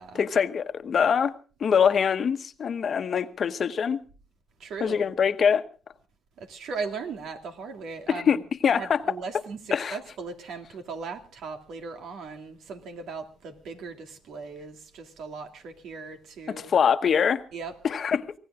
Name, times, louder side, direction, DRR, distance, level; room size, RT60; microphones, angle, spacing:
voice 1, 0.2-1.3 1.6-4.0 4.8-5.6 8.1-9.0 9.7-9.9 16.7-17.4 17.8-18.2, left 7 dB, 50° left, 1.1 m, -23 dB
voice 2, 4.6-5.0 6.4-8.4 8.7-16.7 17.5-17.7, right 4 dB, 75° right, 2.4 m, -38 dB
25.5 x 18.0 x 2.4 m
cardioid pair, 90°, 0 cm